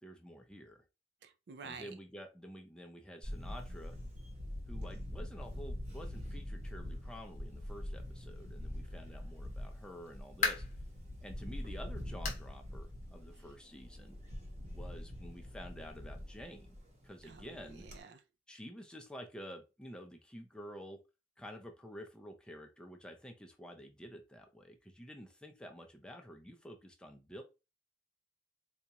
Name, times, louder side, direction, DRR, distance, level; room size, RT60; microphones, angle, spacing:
voice 1, 0.0-0.8 1.6-4.0 4.7-10.6 11.2-14.2 14.7-16.8 17.0-17.9 18.5-21.0 21.4-27.4, equal, 5° left, 0.4 m, -50 dB
voice 2, 1.2-2.0 17.2-18.2, right 5 dB, 55° right, 0.4 m, -50 dB
Camera, 3.2-18.0, left 1 dB, 35° right, 1.0 m, -44 dB
sound 1, 10.0-10.9 11.4-11.5 12.2-12.5 12.8-12.9 13.4-13.5 14.6-14.7, left 5 dB, 40° left, 0.7 m, -36 dB
4.0 x 2.4 x 2.8 m
head